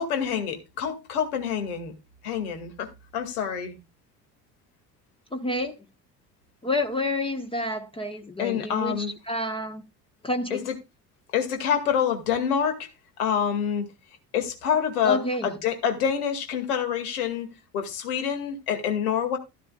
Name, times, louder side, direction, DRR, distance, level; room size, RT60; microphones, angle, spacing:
voice 1, 0.0-1.9 2.2-3.8 8.4-9.1 10.5-10.7 11.3-12.9 13.2-13.8 14.3-19.4, left 8 dB, 65° left, 2.3 m, -27 dB
voice 2, 5.3-5.8 6.6-9.8 10.2-10.6 15.0-15.5, left 1 dB, 10° left, 1.1 m, -29 dB
13.0 x 12.5 x 2.4 m
figure-of-eight pair, 60°, 48 cm